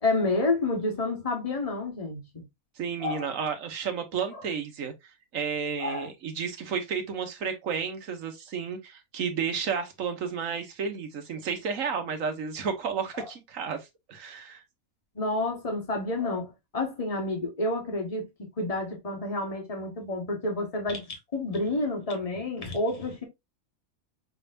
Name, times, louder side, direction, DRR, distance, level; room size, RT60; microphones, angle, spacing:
voice 1, 0.0-2.4 3.0-3.3 4.3-4.4 5.8-6.1 13.1-13.3 15.1-18.3 18.6-23.2, left 2 dB, 25° left, 1.5 m, -29 dB
voice 2, 2.8-4.9 5.3-14.6, right 6 dB, 70° right, 1.4 m, -32 dB
6.0 x 3.4 x 2.5 m
omnidirectional pair, 1.5 m